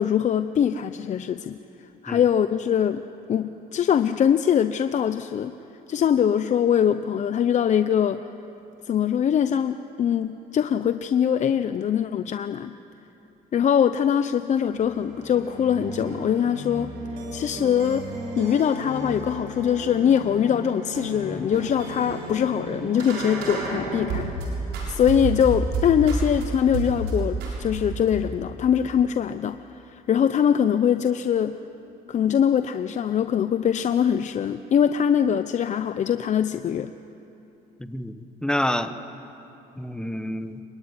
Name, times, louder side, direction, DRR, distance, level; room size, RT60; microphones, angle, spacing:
voice 1, 0.0-1.6 2.0-5.5 5.9-8.3 8.8-12.7 13.5-16.9 17.3-24.3 24.9-31.6 32.1-36.9, left 8 dB, 45° left, 10 dB, 0.7 m, -23 dB
sound 1, 14.7-24.4 24.7-26.4 26.7-27.1 27.4-28.2, right 3 dB, 90° right, 7.2 m, -32 dB
voice 2, 37.8-38.9 39.8-40.6, left 1 dB, 5° left, 9 dB, 1.3 m, -28 dB
26.0 x 23.5 x 9.8 m, 3.0 s
cardioid pair, 110°, 17 cm